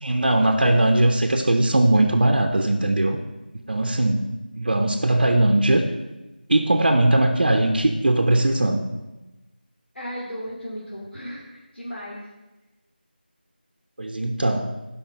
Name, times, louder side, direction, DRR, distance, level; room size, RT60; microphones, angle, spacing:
voice 1, 0.0-3.2 3.7-4.3 4.6-5.9 6.5-8.8 14.0-14.8, right 1 dB, 50° right, 4 dB, 0.8 m, -19 dB
voice 2, 9.9-12.3, equal, 85° left, -5 dB, 2.6 m, -35 dB
11.5 x 5.7 x 5.6 m, 1.1 s
figure-of-eight pair, 175°, 6 cm